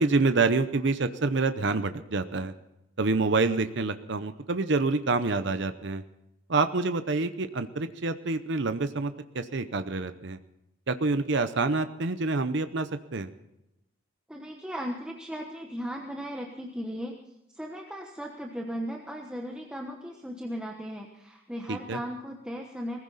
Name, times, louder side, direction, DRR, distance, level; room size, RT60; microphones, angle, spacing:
voice 1, 0.0-2.5 3.0-6.0 6.5-10.4 10.9-13.3 21.7-22.0, right 3 dB, 55° right, 10 dB, 0.7 m, -27 dB
voice 2, 14.3-17.1 17.5-23.0, equal, 5° right, 1 dB, 1.1 m, -37 dB
19.0 x 15.5 x 4.1 m, 0.89 s
head